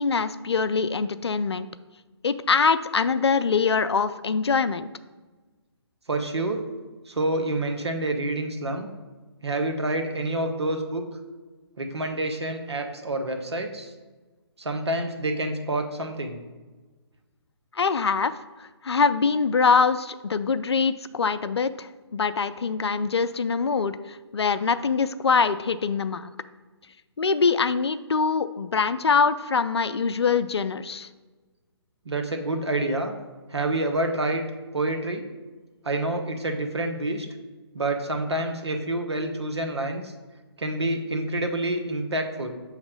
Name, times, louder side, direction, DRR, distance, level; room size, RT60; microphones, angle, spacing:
voice 1, 0.0-1.7 2.2-4.9 17.7-18.3 18.6-26.3 27.2-31.1, left 5 dB, 70° left, 12 dB, 0.4 m, -24 dB
voice 2, 6.1-6.7 7.1-8.9 9.4-11.0 11.8-13.9 14.6-16.4 32.0-33.1 33.5-34.5 34.7-35.2 35.8-37.3 37.7-40.1 40.6-42.6, right 2 dB, 70° right, 5 dB, 0.9 m, -28 dB
6.9 x 3.2 x 5.1 m, 1.3 s
figure-of-eight pair, 140°, 14 cm